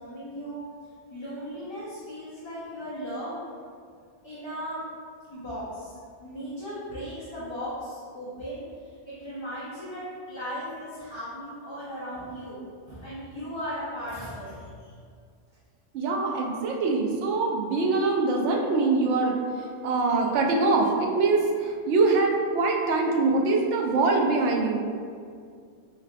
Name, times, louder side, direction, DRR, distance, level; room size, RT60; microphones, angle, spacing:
voice 1, 0.0-3.4 4.2-4.8 5.3-5.9 6.2-12.6 12.8-14.9, equal, 30° left, -10 dB, 0.7 m, -37 dB
voice 2, 15.9-24.9, right 3 dB, 75° right, 0 dB, 0.9 m, -24 dB
4.6 x 3.2 x 2.4 m, 2.2 s
omnidirectional pair, 1.2 m